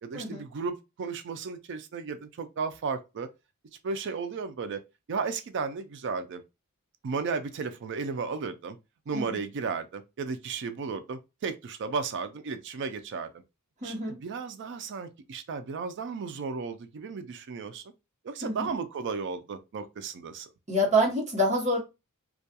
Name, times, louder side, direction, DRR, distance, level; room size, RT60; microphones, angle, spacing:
voice 1, 0.0-3.3 3.8-4.8 5.1-6.4 7.0-8.8 9.1-13.4 13.8-17.9 18.2-20.5, right 5 dB, 55° right, 0.4 m, -34 dB
voice 2, 13.8-14.2 18.4-18.7 20.7-21.8, equal, 30° right, 0.9 m, -26 dB
2.3 x 2.2 x 2.7 m
head